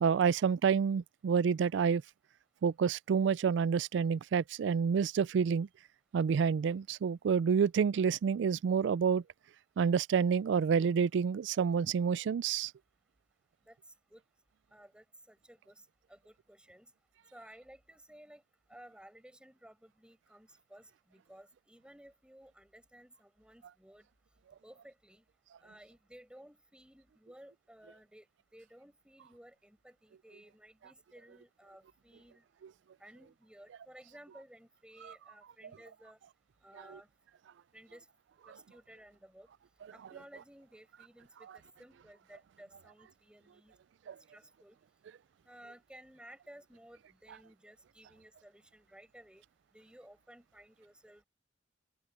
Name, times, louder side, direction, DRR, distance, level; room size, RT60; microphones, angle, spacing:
voice 1, 0.0-2.0 2.6-5.7 6.1-9.2 9.8-12.7 44.1-44.2, right 6 dB, 70° right, 0.3 m, -28 dB
voice 2, 14.7-16.9 17.3-18.4 18.7-24.1 24.6-25.2 25.6-28.3 28.5-32.4 33.0-36.2 36.6-37.1 37.7-38.1 38.5-39.5 39.9-43.7 44.3-44.8 45.4-49.4 49.7-51.3, right 1 dB, 5° right, 7.8 m, -56 dB
open air
head